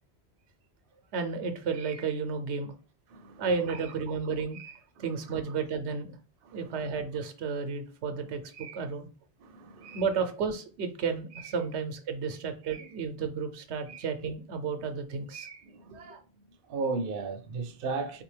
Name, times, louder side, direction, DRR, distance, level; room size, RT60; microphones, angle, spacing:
voice 1, 1.1-2.7 3.4-6.1 6.5-9.1 9.8-15.6 15.9-16.2, right 5 dB, 90° right, 0.9 m, -32 dB
voice 2, 3.1-3.8 5.0-5.1 5.3-5.4 6.4-6.8 9.4-10.0 13.9-14.0 15.6-16.0 16.7-18.2, right 4 dB, 65° right, 0.7 m, -36 dB
3.5 x 2.6 x 3.2 m
omnidirectional pair, 1.1 m